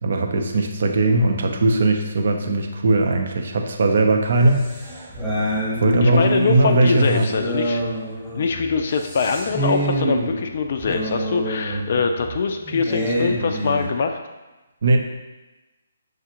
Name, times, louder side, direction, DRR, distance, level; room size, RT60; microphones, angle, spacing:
voice 1, 0.0-5.1 5.8-7.3 14.8-15.0, right 2 dB, 55° right, 3 dB, 0.6 m, -19 dB
sound 1, 4.3-13.9, right 1 dB, 5° right, 1.1 m, -26 dB
voice 2, 6.0-7.8 8.4-14.2, left 5 dB, 50° left, 5 dB, 0.3 m, -23 dB
6.2 x 2.4 x 2.8 m, 1.1 s
figure-of-eight pair, 140°, 0 cm